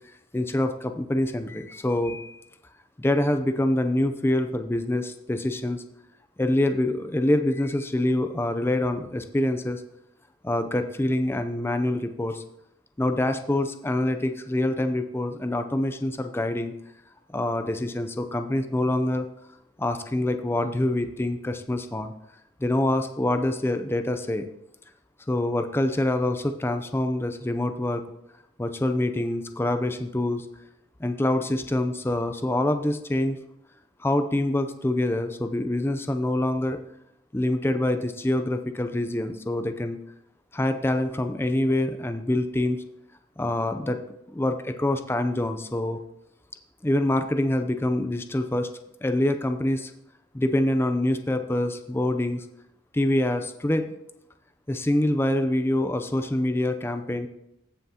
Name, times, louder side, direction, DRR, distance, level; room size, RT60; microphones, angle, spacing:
voice 1, 0.3-2.4 3.0-5.8 6.4-9.8 10.4-12.4 13.0-16.7 17.3-19.3 19.8-22.1 22.6-24.4 25.3-28.0 28.6-30.5 31.0-33.4 34.0-36.8 37.3-40.0 40.5-42.8 43.4-44.0 44.3-46.0 46.8-48.7 49.0-49.9 50.3-52.5 52.9-53.9 54.7-57.3, left 1 dB, 15° left, 8 dB, 0.4 m, -25 dB
15.0 x 5.7 x 2.8 m, 0.80 s
head